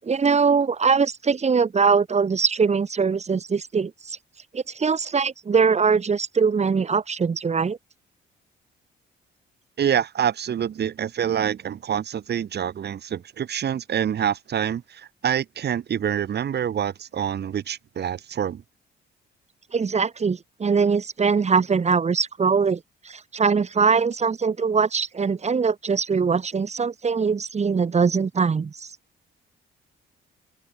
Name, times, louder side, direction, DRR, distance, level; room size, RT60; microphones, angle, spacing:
voice 1, 0.0-4.2 4.5-7.8 19.7-22.8 23.0-28.9, right 5 dB, 35° right, 1.6 m, -22 dB
voice 2, 9.8-18.6, right 9 dB, 55° right, 2.5 m, -26 dB
open air
cardioid pair, 90°, 20 cm